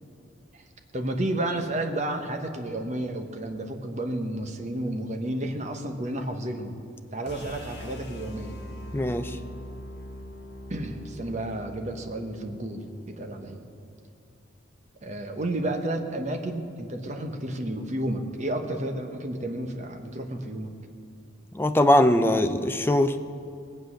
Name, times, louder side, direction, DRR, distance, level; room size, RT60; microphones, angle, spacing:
voice 1, 0.9-6.8 7.1-8.6 10.7-13.7 15.0-20.7, right 1 dB, 35° right, 4 dB, 1.1 m, -31 dB
sound 1, 7.3-13.4, equal, 55° left, 1.7 m, -42 dB
voice 2, 8.9-9.4 21.5-23.2, left 1 dB, 10° left, 8 dB, 0.4 m, -21 dB
20.5 x 7.9 x 6.4 m, 2.4 s
head